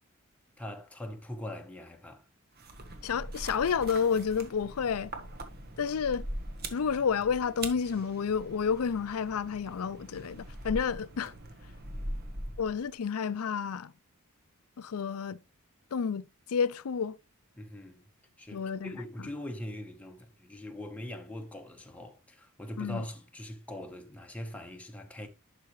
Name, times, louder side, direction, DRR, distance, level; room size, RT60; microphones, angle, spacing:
voice 1, 0.6-2.2 11.9-12.6 17.6-18.1 18.4-25.3, left 1 dB, 5° left, 1.0 m, -42 dB
sound 1, 2.6-12.9, right 1 dB, 45° right, 1.2 m, -42 dB
voice 2, 3.0-5.1 5.8-6.3 6.7-11.3 12.6-13.9 14.8-15.4 15.9-17.2 18.5-18.9 19.2-19.3 22.8-23.0, left 6 dB, 85° left, 0.5 m, -30 dB
11.5 x 4.8 x 3.1 m
head